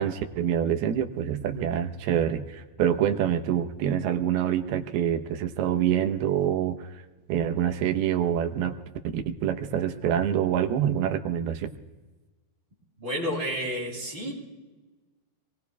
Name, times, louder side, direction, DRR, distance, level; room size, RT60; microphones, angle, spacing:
voice 1, 0.0-7.0 7.3-8.7 9.1-11.7, right 9 dB, 80° right, 6 dB, 2.9 m, -26 dB
voice 2, 13.0-14.3, equal, 25° right, -6 dB, 7.7 m, -30 dB
27.5 x 22.0 x 2.3 m, 1.2 s
omnidirectional pair, 4.5 m